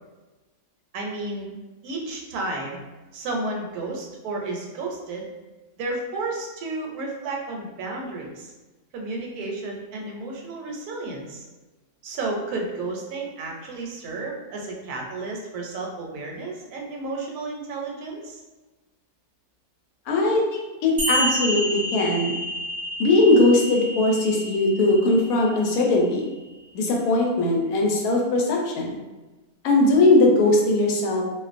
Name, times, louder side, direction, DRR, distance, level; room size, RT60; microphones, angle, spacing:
voice 1, 0.9-1.5 1.8-2.8 3.1-5.3 5.8-8.5 8.9-11.4 12.0-18.4, right 2 dB, 85° right, 0 dB, 1.1 m, -32 dB
voice 2, 20.1-22.3 23.0-26.3 26.7-29.0 29.6-31.2, left 2 dB, 75° left, -1 dB, 1.0 m, -20 dB
sound 1, 21.0-26.0, right 1 dB, 55° right, 0.5 m, -30 dB
2.5 x 2.2 x 2.4 m, 1.2 s
omnidirectional pair, 1.6 m